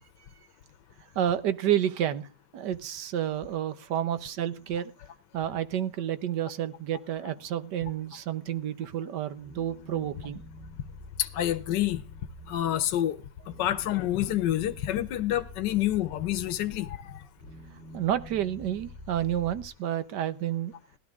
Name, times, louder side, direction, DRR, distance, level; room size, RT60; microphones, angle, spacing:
voice 1, 1.1-2.3 2.5-4.9 5.3-10.4 17.9-20.7, right 11 dB, 70° right, 1.4 m, -30 dB
sound 1, 9.4-19.7, left 2 dB, 40° right, 2.2 m, -47 dB
voice 2, 11.2-12.0 12.5-13.2 13.5-17.2, left 13 dB, 75° left, 1.5 m, -28 dB
17.0 x 12.5 x 3.6 m
omnidirectional pair, 1.9 m